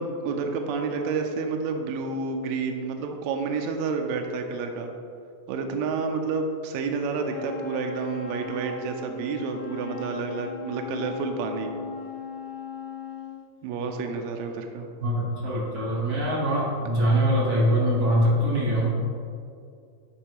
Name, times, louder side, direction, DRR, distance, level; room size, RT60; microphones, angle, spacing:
voice 1, 0.0-4.9 5.5-11.7 13.6-14.9, right 4 dB, 80° right, 4 dB, 1.7 m, -29 dB
Wind instrument woodwind instrument, 7.3-13.4, left 4 dB, 80° left, 2.4 m, -37 dB
voice 2, 15.0-18.9, equal, 55° right, -6 dB, 1.0 m, -23 dB
10.0 x 4.1 x 2.9 m, 2.4 s
omnidirectional pair, 3.5 m